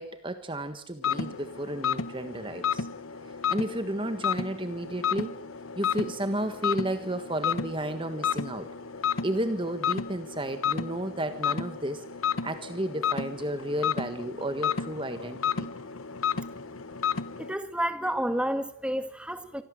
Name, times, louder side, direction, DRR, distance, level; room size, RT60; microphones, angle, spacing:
voice 1, 0.0-2.9 3.5-5.3 5.7-8.7 9.2-12.0 12.4-15.7, right 1 dB, 25° right, 9 dB, 1.4 m, -32 dB
sound 1, 1.0-17.5, left 7 dB, 85° left, 1.3 m, -32 dB
voice 2, 17.4-19.6, equal, 5° right, 9 dB, 1.9 m, -30 dB
26.5 x 25.5 x 7.6 m, 0.64 s
head